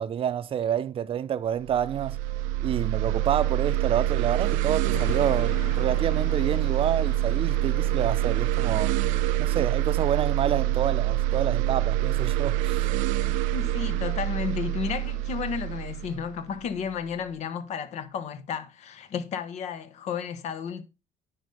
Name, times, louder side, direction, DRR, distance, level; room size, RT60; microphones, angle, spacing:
voice 1, 0.0-2.2 2.6-8.9 9.4-12.9, right 9 dB, 45° right, 0.7 m, -28 dB
sound 1, 1.6-17.0, right 14 dB, 85° right, 0.5 m, -26 dB
sound 2, 4.9-9.6, left 12 dB, 90° left, 0.5 m, -42 dB
voice 2, 13.5-20.8, left 7 dB, 60° left, 1.2 m, -33 dB
9.8 x 4.0 x 5.3 m
supercardioid pair, 90°, 13 cm